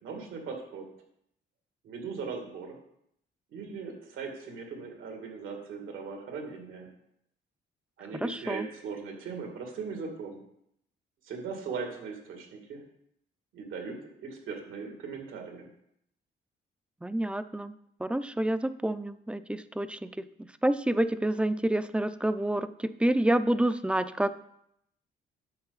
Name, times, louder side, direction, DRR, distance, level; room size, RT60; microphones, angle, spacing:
voice 1, 0.0-0.9 1.8-2.8 3.5-6.9 8.0-10.4 11.2-12.8 13.5-15.7, right 5 dB, 80° right, 2 dB, 2.4 m, -39 dB
voice 2, 8.1-8.7 17.0-20.2 20.6-24.3, right 1 dB, 5° right, 12 dB, 0.5 m, -28 dB
10.5 x 6.8 x 4.1 m, 0.75 s
cardioid pair, 90°, 20 cm